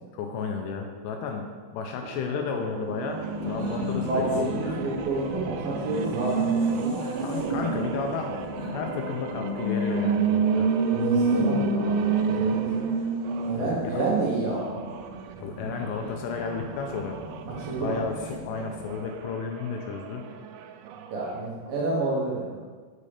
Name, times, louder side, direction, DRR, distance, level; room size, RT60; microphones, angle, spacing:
voice 1, 0.1-1.5 1.7-4.8 7.2-8.4 8.7-10.7 13.5-14.1 15.4-17.2 17.8-20.3, left 5 dB, 80° left, 3 dB, 2.6 m, -33 dB
sound 1, 2.0-13.7 14.4-21.5, right 6 dB, 85° right, 2.9 m, -39 dB
Race car auto racing, 2.9-19.1, right 3 dB, 30° right, 1.4 m, -29 dB
voice 2, 4.0-7.0 10.9-12.6 13.5-14.8 15.6-15.7 17.6-18.0 21.1-22.6, right 2 dB, 65° right, -5 dB, 2.5 m, -29 dB
6.4 x 5.6 x 5.0 m, 1.5 s
omnidirectional pair, 5.1 m